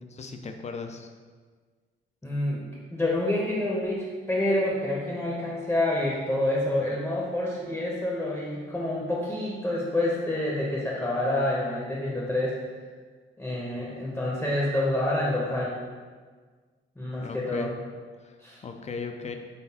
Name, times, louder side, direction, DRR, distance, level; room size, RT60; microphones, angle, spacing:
voice 1, 0.1-1.1 17.2-17.7 18.2-18.4 18.6-19.3, left 4 dB, 35° left, 5 dB, 0.4 m, -37 dB
voice 2, 2.2-2.6 2.9-12.6 13.4-15.7 17.0-17.7 18.4-18.6, left 1 dB, 10° left, -4 dB, 0.7 m, -28 dB
3.9 x 3.4 x 2.8 m, 1.5 s
cardioid pair, 85°, 20 cm